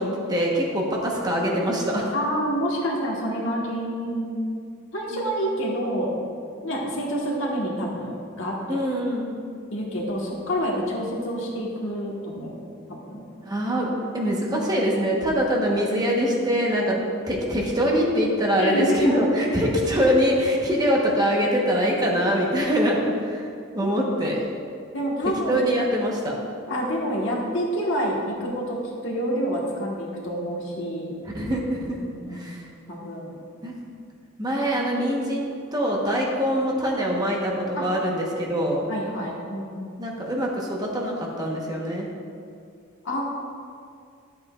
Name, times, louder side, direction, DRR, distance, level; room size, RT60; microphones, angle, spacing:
voice 1, 0.0-2.1 5.1-5.2 8.7-9.3 13.4-13.9 14.1-17.0 17.3-23.5 23.7-24.4 25.5-26.3 31.3-32.0 32.3-32.6 33.6-33.7 34.4-35.4 35.7-38.9 40.0-42.1, equal, 20° right, -2 dB, 1.0 m, -23 dB
voice 2, 2.1-4.4 4.9-6.1 6.6-8.8 9.7-12.5 13.1-13.3 18.6-19.2 24.9-25.6 26.7-31.2 31.8-32.6 32.9-33.4 37.7-37.9 38.9-39.9 43.0-43.2, equal, 65° left, -2 dB, 1.4 m, -28 dB
11.0 x 7.8 x 2.4 m, 2.3 s
head